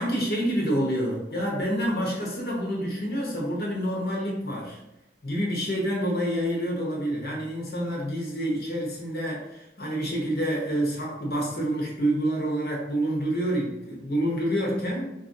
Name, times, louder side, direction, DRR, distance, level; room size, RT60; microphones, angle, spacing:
voice 1, 0.0-4.8 5.2-15.1, equal, 60° left, -2 dB, 0.9 m, -28 dB
4.2 x 2.5 x 2.6 m, 0.93 s
head